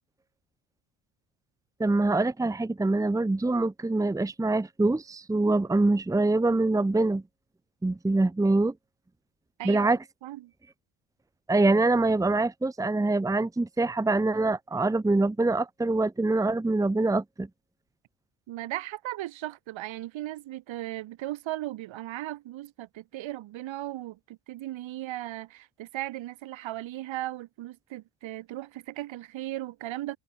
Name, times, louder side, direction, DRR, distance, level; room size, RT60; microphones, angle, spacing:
voice 1, 1.8-7.2 7.8-8.7 9.6-10.0 11.5-17.5, right 2 dB, 5° right, 1.3 m, -24 dB
voice 2, 9.6-9.9 10.2-10.5 18.5-30.2, right 15 dB, 65° right, 5.9 m, -37 dB
cardioid pair, 175°, 49 cm